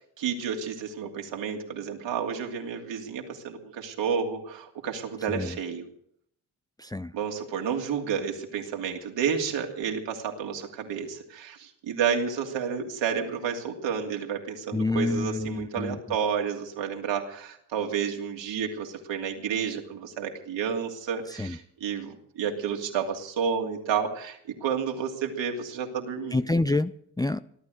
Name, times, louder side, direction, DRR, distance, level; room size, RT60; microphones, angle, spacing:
voice 1, 0.2-5.8 7.1-26.4, right 7 dB, 65° right, 2 dB, 2.9 m, -31 dB
voice 2, 6.8-7.1 14.7-16.0 21.4-21.6 26.3-27.4, left 2 dB, 10° left, 11 dB, 0.6 m, -28 dB
17.5 x 12.0 x 6.5 m, 0.69 s
hypercardioid pair, 40°, 47 cm